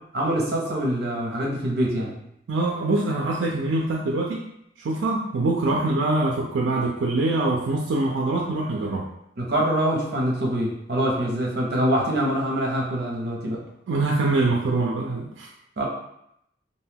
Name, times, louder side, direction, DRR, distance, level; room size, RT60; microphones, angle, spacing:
voice 1, 0.1-2.2 9.4-13.6 15.8-15.9, right 1 dB, 60° right, -1 dB, 0.7 m, -24 dB
voice 2, 2.5-4.4 4.8-9.1 13.9-15.5, right 2 dB, 85° right, -1 dB, 0.4 m, -24 dB
2.6 x 2.2 x 3.3 m, 0.77 s
head